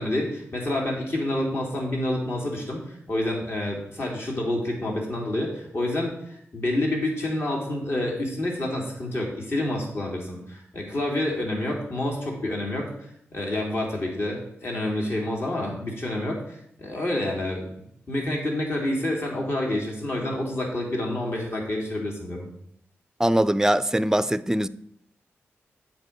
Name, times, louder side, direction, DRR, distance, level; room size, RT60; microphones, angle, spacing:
voice 1, 0.0-12.9 13.3-22.5, left 1 dB, 55° left, 2.6 m, -28 dB
voice 2, 23.2-24.7, right 1 dB, 10° right, 0.5 m, -22 dB
8.0 x 4.5 x 6.7 m
cardioid pair, 45°, 5 cm